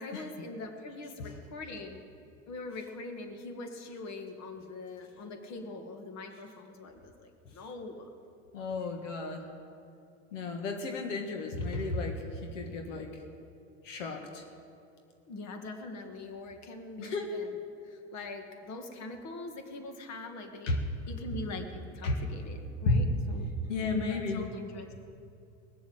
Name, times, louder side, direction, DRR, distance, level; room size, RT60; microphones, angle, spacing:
voice 1, 0.0-2.0 2.5-8.1 15.3-17.6 17.8-20.8 21.1-23.5 23.8-24.9, left 2 dB, 45° left, 5 dB, 2.0 m, -42 dB
voice 2, 8.5-9.4 10.3-13.1 13.8-14.4 17.0-17.3 20.7-20.8 22.0-22.2 22.8-23.0 23.7-24.5, left 2 dB, 85° left, 3 dB, 1.6 m, -32 dB
20.5 x 7.4 x 7.9 m, 2.6 s
hypercardioid pair, 95°, 36 cm